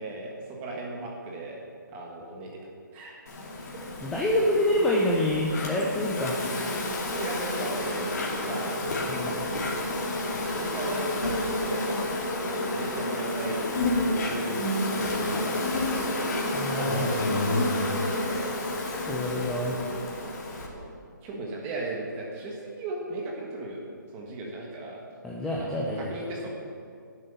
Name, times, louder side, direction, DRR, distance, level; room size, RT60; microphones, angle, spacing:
voice 1, 0.0-1.6 1.9-2.6 2.9-3.2 3.7-3.9 7.1-8.8 9.2-9.7 10.3-12.0 12.3-16.2 16.7-17.9 18.1-18.6 19.2-20.2 20.7-20.9 21.2-23.8 24.1-25.0 25.6-26.5, right 2 dB, 15° right, -1 dB, 1.5 m, -37 dB
Insect, 3.3-20.7, left 1 dB, 50° left, 2.5 m, -30 dB
voice 2, 4.0-6.4 9.1-9.5 16.5-17.1 19.1-19.8 25.2-26.5, left 1 dB, 5° left, -3 dB, 0.5 m, -27 dB
10.0 x 7.6 x 6.9 m, 2.2 s
hypercardioid pair, 165°, 11 cm